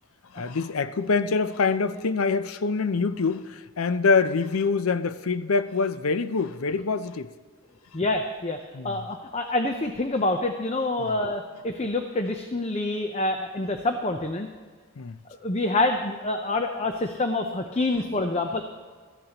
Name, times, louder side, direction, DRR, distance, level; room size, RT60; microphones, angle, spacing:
voice 1, 0.3-7.3 8.7-9.0 11.0-11.2 15.0-15.2, left 4 dB, 85° left, 13 dB, 0.6 m, -25 dB
voice 2, 7.9-8.6 8.8-14.5 15.4-18.6, left 2 dB, 30° left, 5 dB, 0.6 m, -27 dB
17.0 x 13.5 x 2.9 m, 1.5 s
head